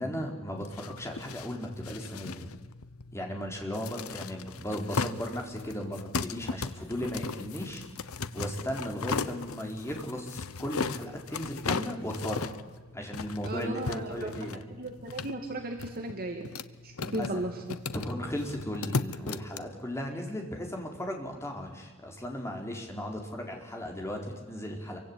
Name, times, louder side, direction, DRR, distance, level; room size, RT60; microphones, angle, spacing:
voice 1, 0.0-2.5 3.1-7.8 8.3-12.5 12.9-14.6 17.0-17.5 17.9-25.0, equal, 10° left, 1 dB, 4.3 m, -36 dB
sound 1, 0.6-19.6, left 4 dB, 80° left, 1.0 m, -37 dB
voice 2, 13.4-16.5 16.8-17.8, right 1 dB, 45° right, 3 dB, 2.4 m, -36 dB
27.0 x 24.0 x 8.8 m, 1.3 s
head